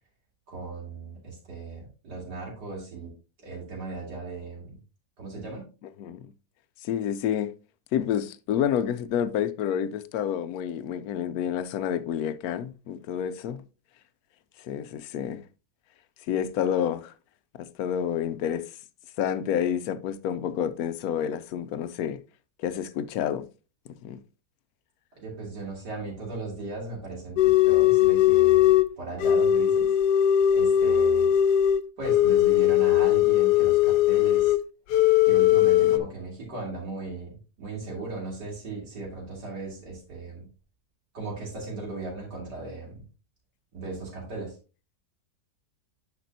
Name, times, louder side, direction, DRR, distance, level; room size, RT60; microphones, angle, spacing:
voice 1, 0.5-3.1 3.4-4.8 5.2-5.6 25.1-29.9 30.5-31.3 32.0-34.6 35.2-40.5 41.1-43.0 43.7-44.6, right 3 dB, 80° right, 3.4 m, -37 dB
voice 2, 6.8-7.5 7.9-13.6 14.6-15.4 16.3-17.1 17.6-18.6 19.2-22.2 22.6-23.4 23.9-24.2 35.8-36.0, left 9 dB, 70° left, 1.0 m, -29 dB
sound 1, 27.4-28.9 29.2-34.6 34.9-36.0, left 11 dB, 90° left, 1.2 m, -20 dB
10.5 x 5.2 x 2.7 m
omnidirectional pair, 1.7 m